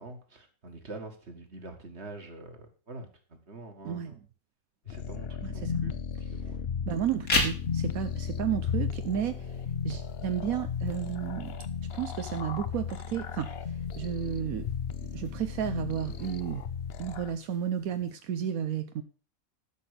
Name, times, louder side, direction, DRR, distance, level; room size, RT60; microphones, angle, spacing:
voice 1, 0.0-4.2 4.9-6.0 6.3-6.6, right 2 dB, 50° right, 6 dB, 2.2 m, -45 dB
sound 1, 4.9-17.3, left 7 dB, 50° left, 0.9 m, -35 dB
voice 2, 5.4-5.7 6.9-9.5 9.8-11.6 11.9-14.6 15.0-16.6 17.0-19.0, right 9 dB, 80° right, 8 dB, 1.2 m, -32 dB
sound 2, 7.1-18.1, left 2 dB, 85° left, 3.3 m, -39 dB
12.5 x 6.0 x 6.7 m, 0.38 s
omnidirectional pair, 1.5 m